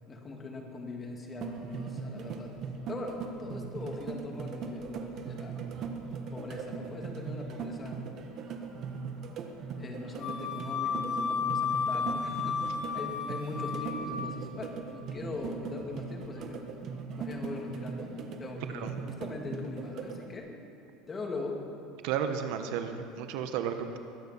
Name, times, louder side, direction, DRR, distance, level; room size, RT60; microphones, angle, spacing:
voice 1, 0.1-2.5 2.9-5.7 6.3-8.1 9.8-16.6 17.2-20.5 21.1-21.6, left 3 dB, 20° left, 1 dB, 2.1 m, -40 dB
sound 1, 1.4-20.3, right 5 dB, 45° right, 1.3 m, -40 dB
Wind instrument woodwind instrument, 10.2-14.2, left 6 dB, 45° left, 2.3 m, -33 dB
voice 2, 22.0-24.0, right 8 dB, 70° right, 7 dB, 1.1 m, -33 dB
21.5 x 9.2 x 5.6 m, 2.8 s
cardioid pair, 145°, 0 cm